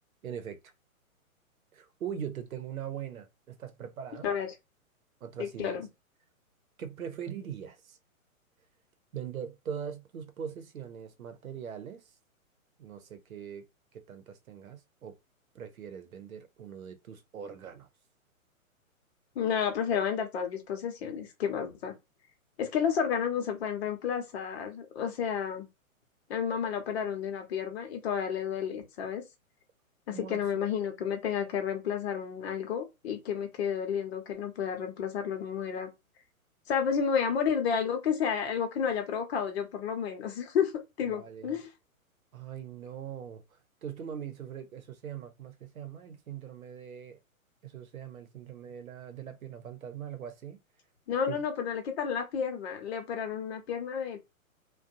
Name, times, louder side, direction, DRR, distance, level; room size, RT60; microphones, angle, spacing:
voice 1, 0.2-0.6 1.7-4.3 5.2-5.8 6.8-8.0 9.1-12.0 12.8-13.6 13.9-15.2 15.5-17.9 30.1-30.5 41.0-41.6 42.3-47.2 47.6-50.6 51.3-51.4, right 8 dB, 75° right, 0.8 m, -41 dB
voice 2, 5.4-5.9 19.3-21.9 22.6-25.7 26.3-29.2 30.1-35.9 36.7-40.7 41.0-41.7 51.1-54.2, left 7 dB, 45° left, 0.9 m, -31 dB
2.6 x 2.3 x 2.6 m
hypercardioid pair, 125°, 42 cm